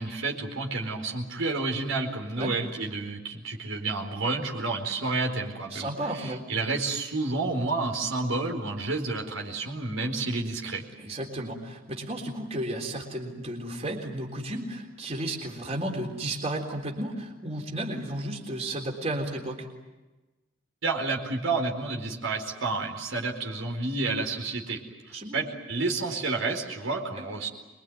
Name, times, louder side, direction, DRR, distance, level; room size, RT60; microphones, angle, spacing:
voice 1, 0.0-10.8 20.8-24.8 25.3-27.5, right 3 dB, 85° right, 0 dB, 4.5 m, -30 dB
voice 2, 5.7-6.4 11.0-19.7 25.1-25.4 27.2-27.3, right 1 dB, 30° right, 0 dB, 3.7 m, -33 dB
25.5 x 22.5 x 9.3 m, 1.1 s
head